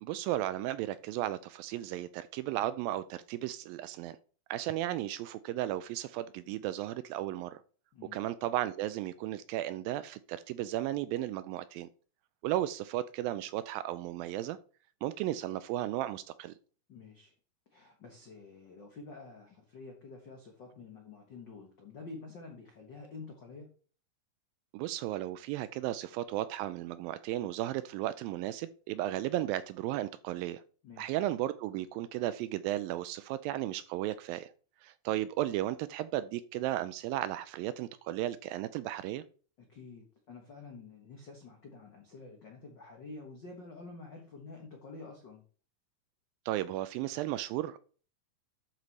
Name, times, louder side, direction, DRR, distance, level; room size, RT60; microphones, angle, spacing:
voice 1, 0.0-4.2 4.5-7.6 8.1-11.9 12.4-14.6 15.0-16.5 24.7-30.6 31.0-34.5 34.8-39.2 46.5-47.8, right 14 dB, 80° right, 14 dB, 2.1 m, -34 dB
voice 2, 16.9-17.3 17.7-23.7 30.8-31.1 39.6-45.4, left 3 dB, 70° left, 1 dB, 1.0 m, -49 dB
11.5 x 4.8 x 4.1 m, 0.40 s
omnidirectional pair, 4.3 m